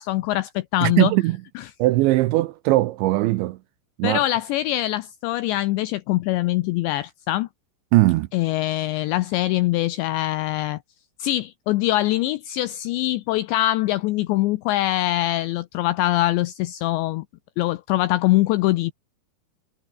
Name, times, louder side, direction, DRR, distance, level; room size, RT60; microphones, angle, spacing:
voice 1, 0.0-1.1 1.6-1.7 4.0-7.5 8.3-10.8 11.2-17.2 17.6-18.9, left 16 dB, 85° left, 2.5 m, -23 dB
voice 2, 0.8-1.4 1.8-3.6 4.0-4.2 7.9-8.3, right 18 dB, 80° right, 2.7 m, -19 dB
omnidirectional pair, 6.0 m